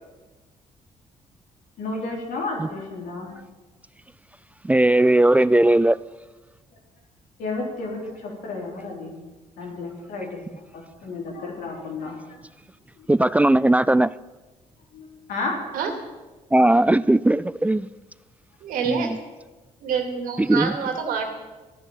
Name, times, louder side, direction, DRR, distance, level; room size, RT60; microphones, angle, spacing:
voice 1, 1.8-3.4 7.4-9.1 9.6-10.6 11.0-12.2 14.9-15.6, left 3 dB, 85° left, 4.0 m, -32 dB
voice 2, 4.6-6.0 13.1-14.1 16.5-17.9 18.8-19.2 20.4-20.7, right 1 dB, 10° right, 0.3 m, -18 dB
voice 3, 18.6-19.1 19.8-21.2, right 6 dB, 90° right, 2.4 m, -26 dB
13.5 x 10.5 x 7.3 m
cardioid pair, 80°, 14 cm